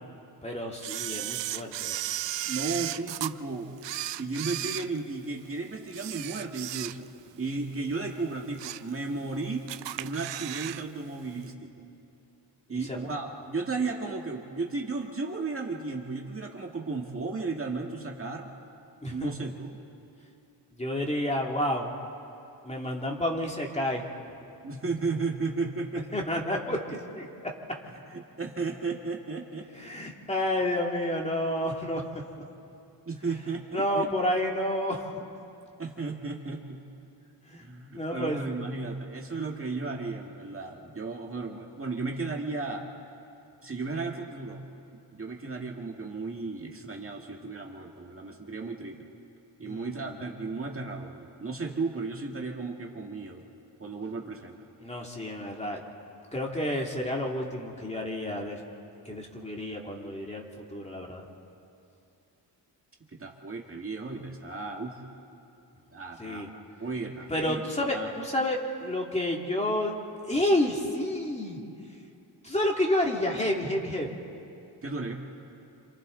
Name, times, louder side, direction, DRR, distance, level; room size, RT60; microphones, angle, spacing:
voice 1, 0.4-1.9 12.7-13.0 19.0-19.3 20.8-21.9 22.6-24.1 26.1-27.3 29.7-32.0 33.7-35.1 37.5-37.6 37.9-38.6 49.6-50.1 54.8-55.8 56.3-58.6 59.0-61.2 66.2-66.5 67.3-69.9 70.3-71.6 72.4-74.2, left 1 dB, 15° left, -1 dB, 2.6 m, -30 dB
Camera, 0.8-3.3 3.8-5.4 5.9-7.3 7.6-7.8 8.3-8.9 9.3-9.4 9.7-10.8 11.1-11.2, right 13 dB, 85° right, 0.6 m, -35 dB
voice 2, 2.5-3.7 4.2-7.1 7.4-9.7 10.0-11.7 12.7-18.5 19.1-19.8 24.6-26.1 28.1-29.7 33.1-34.1 35.8-36.8 37.6-42.9 43.6-44.6 45.1-49.0 49.6-53.4 53.8-54.6 63.1-65.0 65.9-68.1 74.8-75.1, right 3 dB, 30° right, 0 dB, 2.0 m, -34 dB
27.5 x 27.0 x 4.0 m, 2.7 s
cardioid pair, 100°, 42 cm